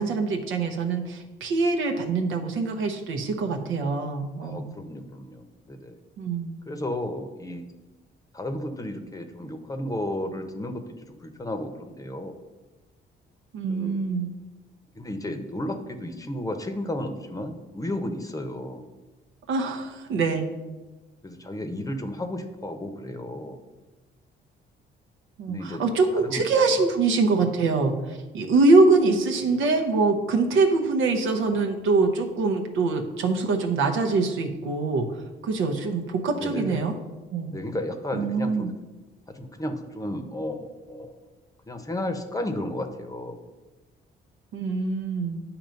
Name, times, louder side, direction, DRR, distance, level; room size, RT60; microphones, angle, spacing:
voice 1, 0.0-4.7 6.2-6.6 13.5-14.3 19.5-20.5 25.4-35.1 35.4-36.9 37.3-37.5 38.1-38.7 44.5-45.4, right 3 dB, 90° right, 3 dB, 0.8 m, -24 dB
voice 2, 4.4-6.0 6.7-7.6 8.3-12.4 13.7-14.1 14.9-18.9 21.2-23.6 25.5-25.8 26.1-26.4 36.3-36.9 37.5-38.7 39.3-41.2 41.7-43.4, left 1 dB, 15° left, 6 dB, 0.7 m, -33 dB
8.8 x 3.0 x 5.2 m, 1.2 s
cardioid pair, 90°, 20 cm